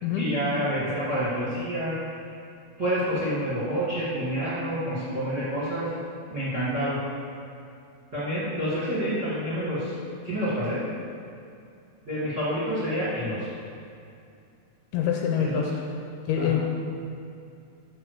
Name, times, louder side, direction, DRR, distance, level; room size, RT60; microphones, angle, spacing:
voice 1, 0.2-1.9 2.8-5.9 6.3-7.0 8.1-9.9 10.2-10.8 12.0-13.5 15.4-15.6 16.4-16.6, equal, 25° right, -9 dB, 1.8 m, -28 dB
voice 2, 14.9-15.7 16.3-16.6, left 8 dB, 80° left, 1 dB, 2.4 m, -25 dB
6.8 x 6.1 x 6.4 m, 2.5 s
omnidirectional pair, 4.7 m